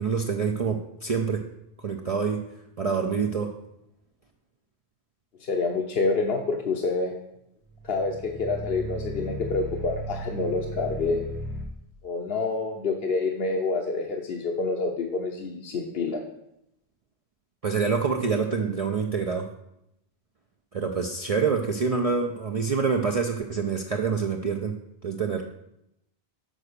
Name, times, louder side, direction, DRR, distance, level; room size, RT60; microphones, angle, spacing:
voice 1, 0.0-1.4 1.8-2.4 2.8-3.5 17.6-19.5 20.7-24.8 25.0-25.4, right 5 dB, 45° right, 2 dB, 0.5 m, -26 dB
voice 2, 5.5-7.2 7.8-11.2 12.0-16.2, left 3 dB, 65° left, 1 dB, 1.0 m, -27 dB
sound 1, 7.8-11.7, right 1 dB, 85° right, 1.5 m, -35 dB
6.4 x 4.8 x 6.6 m, 0.81 s
omnidirectional pair, 1.1 m